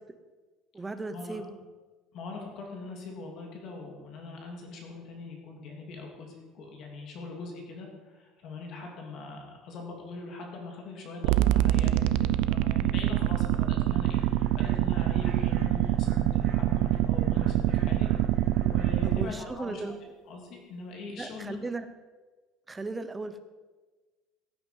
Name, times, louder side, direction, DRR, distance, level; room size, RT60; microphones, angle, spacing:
voice 1, 0.7-1.6 19.0-20.0 21.1-21.9 22.7-23.4, right 3 dB, 10° right, 9 dB, 0.7 m, -36 dB
voice 2, 2.1-18.1 18.6-20.0 20.3-21.6, left 3 dB, 40° left, 1 dB, 3.0 m, -42 dB
sound 1, 11.2-19.3, right 13 dB, 60° right, 0.5 m, -25 dB
sound 2, 14.1-19.2, right 1 dB, 40° right, 2.4 m, -51 dB
16.0 x 9.3 x 5.3 m, 1.3 s
cardioid pair, 180°, 0 cm